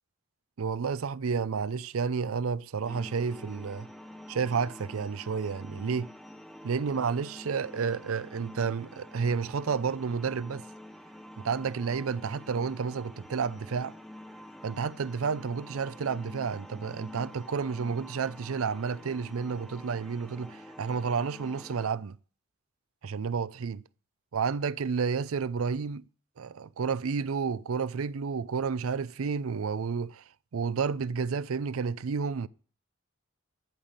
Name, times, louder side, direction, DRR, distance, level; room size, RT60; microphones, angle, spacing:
voice 1, 0.6-3.9 4.3-6.1 6.6-10.6 11.4-13.9 14.6-22.2 23.0-23.8 24.3-26.0 26.4-30.2 30.5-32.5, right 5 dB, 85° right, 0.5 m, -31 dB
sound 1, 2.8-21.9, left 1 dB, ahead, 0.8 m, -47 dB
14.0 x 5.8 x 6.6 m
head